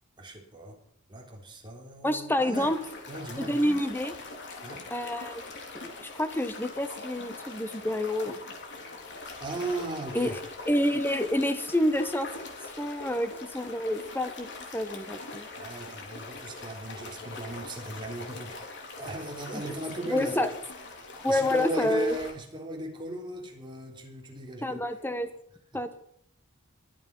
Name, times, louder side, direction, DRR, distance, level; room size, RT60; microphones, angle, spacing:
voice 1, 0.2-0.8 1.1-2.7 3.1-3.8 4.6-4.9 9.4-10.4 15.6-18.6 19.0-20.5 21.3-24.8 25.7-25.8, right 1 dB, 20° right, 0 dB, 3.5 m, -37 dB
voice 2, 2.0-2.8 3.4-4.1 4.9-5.5 5.8-8.4 10.1-10.3 10.7-12.3 12.8-14.5 14.7-15.5 19.5-19.6 20.1-20.5 21.2-22.2 24.6-25.3 25.7-26.0, left 1 dB, 10° left, 9 dB, 1.2 m, -28 dB
sound 1, 2.5-22.3, left 3 dB, 55° left, 3.3 m, -42 dB
22.5 x 7.8 x 5.5 m, 0.68 s
head